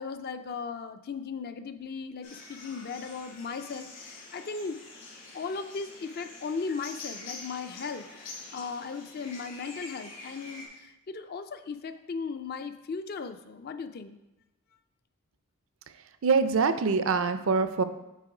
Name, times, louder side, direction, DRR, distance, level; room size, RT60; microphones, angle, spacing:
voice 1, 0.0-4.8 5.3-14.2, left 5 dB, 45° left, 9 dB, 0.4 m, -37 dB
sound 1, 2.2-10.7, left 3 dB, 65° left, 2.4 m, -46 dB
voice 2, 16.2-17.8, right 4 dB, 70° right, 11 dB, 0.5 m, -24 dB
8.3 x 3.8 x 4.9 m, 0.96 s
head